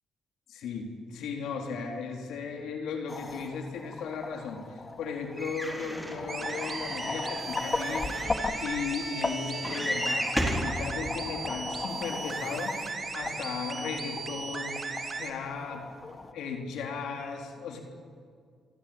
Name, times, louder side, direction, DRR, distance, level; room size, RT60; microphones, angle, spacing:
voice 1, 0.5-14.9 15.2-15.8 16.3-17.8, left 5 dB, 80° left, 3 dB, 3.9 m, -36 dB
scuba regulator audio, 3.1-16.3, left 3 dB, 30° left, 2.6 m, -38 dB
sound 1, 5.4-10.7 11.5-11.6 11.8-11.9, equal, 5° left, 5.0 m, -34 dB
sound 2, 6.3-15.3, right 4 dB, 40° right, 2.8 m, -37 dB
28.5 x 23.5 x 8.9 m, 2.2 s
cardioid pair, 90°, 0 cm